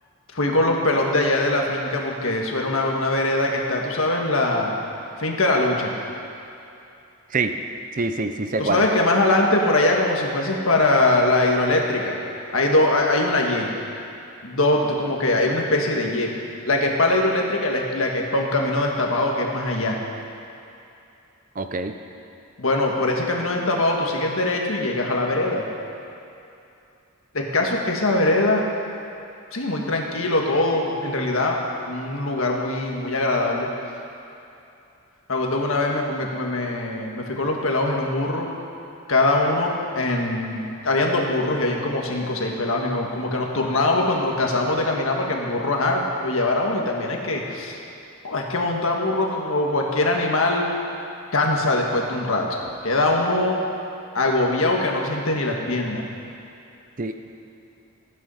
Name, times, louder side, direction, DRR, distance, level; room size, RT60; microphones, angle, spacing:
voice 1, 0.3-4.7 5.2-6.0 8.6-12.2 12.5-13.7 14.4-16.3 16.7-20.0 22.6-25.6 27.3-28.6 29.5-31.6 31.9-33.7 35.3-38.5 39.1-47.8 48.2-50.7 51.3-52.5 52.8-53.6 54.1-56.0, left 2 dB, 65° left, 0 dB, 1.7 m, -22 dB
voice 2, 7.9-8.9 21.6-21.9 57.0-57.2, right 3 dB, 35° right, 7 dB, 0.6 m, -25 dB
15.5 x 9.4 x 5.7 m, 2.7 s
head